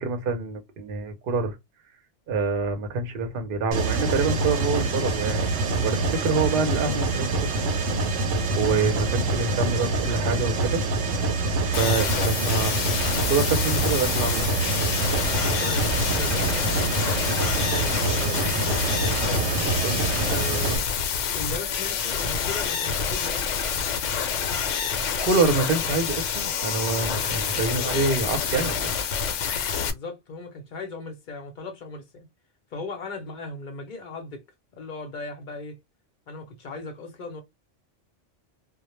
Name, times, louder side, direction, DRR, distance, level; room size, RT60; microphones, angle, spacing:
voice 1, 0.0-1.5 2.3-5.4 5.8-7.5 8.6-10.8 11.6-12.7 13.0-14.4 19.8-20.2 24.7-28.9, right 4 dB, 55° right, 0.7 m, -26 dB
Mechanisms, 3.7-20.8, right 3 dB, 85° right, 1.0 m, -26 dB
sound 1, 11.7-29.9, left 7 dB, 75° left, 0.9 m, -27 dB
voice 2, 15.4-18.5 19.4-19.7 20.3-20.9 21.3-23.6 29.8-32.2 32.7-34.4 34.7-35.8 36.3-37.4, left 2 dB, 50° left, 0.7 m, -37 dB
2.2 x 2.0 x 3.0 m
omnidirectional pair, 1.3 m